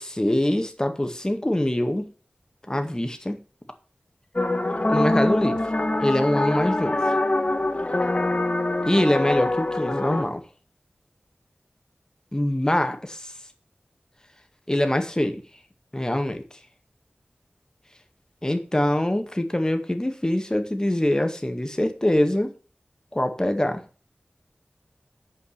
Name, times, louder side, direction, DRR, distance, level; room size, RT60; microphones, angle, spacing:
voice 1, 0.0-2.1 2.7-3.4 4.9-5.6 6.0-7.1 8.8-10.4 12.3-13.3 14.7-15.4 15.9-16.4 18.4-22.5 23.1-23.8, left 1 dB, 20° left, 6 dB, 1.9 m, -24 dB
sound 1, 4.4-10.2, left 2 dB, 40° left, 1.6 m, -24 dB
8.7 x 5.4 x 6.6 m, 0.36 s
wide cardioid pair, 40°, 3 cm